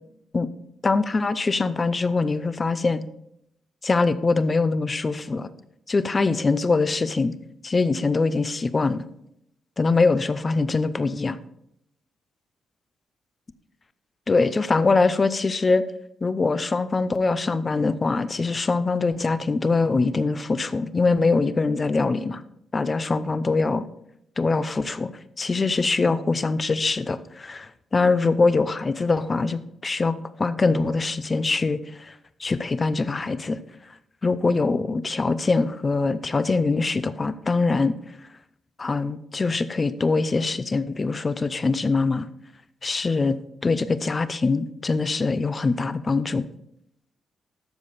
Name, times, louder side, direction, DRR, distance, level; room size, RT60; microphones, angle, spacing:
voice 1, 0.8-3.0 3.8-5.5 5.9-7.3 7.6-9.0 9.8-11.4 14.3-15.8 16.2-22.4 22.7-23.9 24.4-25.1 25.4-32.1 32.4-33.6 34.2-37.9 38.8-42.3 42.8-43.4 43.6-46.4, left 3 dB, 20° left, 14 dB, 0.5 m, -23 dB
12.5 x 6.9 x 4.1 m, 0.77 s
wide cardioid pair, 180°, 0 cm